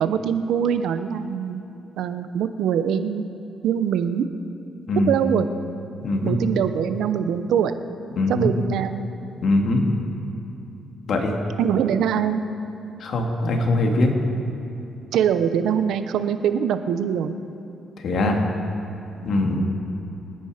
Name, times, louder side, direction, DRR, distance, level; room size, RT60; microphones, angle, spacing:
voice 1, 0.0-1.6 2.0-3.3 3.6-4.3 5.1-5.5 6.2-7.7 8.3-9.1 11.6-12.4 15.1-17.3, right 8 dB, 80° right, 10 dB, 0.8 m, -23 dB
voice 2, 6.0-6.4 8.2-8.5 9.4-9.8 11.1-11.3 13.0-14.1 18.0-18.4 19.2-19.6, left 2 dB, 65° left, 2 dB, 2.3 m, -21 dB
25.0 x 9.7 x 5.1 m, 2.9 s
cardioid pair, 90°, 0 cm